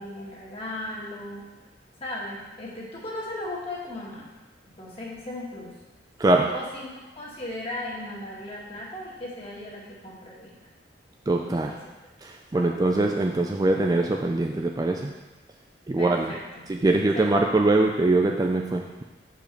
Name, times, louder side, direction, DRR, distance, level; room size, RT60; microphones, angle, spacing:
voice 1, 0.0-1.4 2.0-4.2 4.8-5.7 6.5-10.5 11.7-11.8 12.5-12.8 16.0-16.6 17.1-17.4, left 1 dB, 30° left, -5 dB, 1.7 m, -37 dB
voice 2, 6.2-6.5 11.3-11.7 12.5-15.1 15.9-16.3 16.7-19.0, right 2 dB, 20° right, 2 dB, 0.4 m, -22 dB
6.6 x 5.0 x 5.1 m, 1.1 s
head